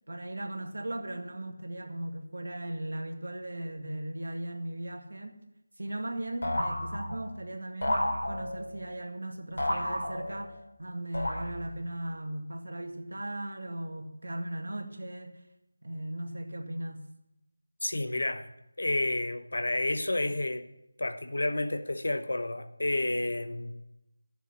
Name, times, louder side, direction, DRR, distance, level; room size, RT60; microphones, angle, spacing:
voice 1, 0.1-5.4 5.8-15.3 15.8-17.1, right 1 dB, 75° right, 4 dB, 2.0 m, -38 dB
sound 1, 6.4-7.4 7.8-8.8 9.6-10.6 11.1-11.9, left 1 dB, 85° left, 3.7 m, -32 dB
voice 2, 17.8-18.5 18.8-20.7 21.0-23.8, left 2 dB, 70° left, 9 dB, 1.2 m, -30 dB
12.0 x 7.2 x 7.3 m, 0.88 s
figure-of-eight pair, 175°, 0 cm